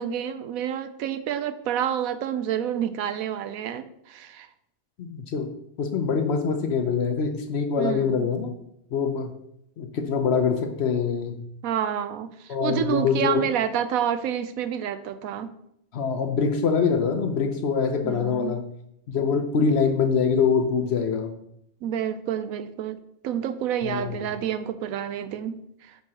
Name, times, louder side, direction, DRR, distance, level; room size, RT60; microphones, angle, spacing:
voice 1, 0.0-4.5 7.8-8.3 11.6-15.5 18.0-18.6 21.8-23.0 23.2-26.0, right 9 dB, 85° right, 11 dB, 1.0 m, -29 dB
voice 2, 5.0-5.5 5.8-8.5 8.9-9.3 9.8-11.4 12.5-13.5 15.9-18.7 19.1-21.3 23.8-24.3, left 6 dB, 60° left, 6 dB, 0.8 m, -24 dB
9.3 x 4.7 x 2.9 m, 0.76 s
omnidirectional pair, 1.4 m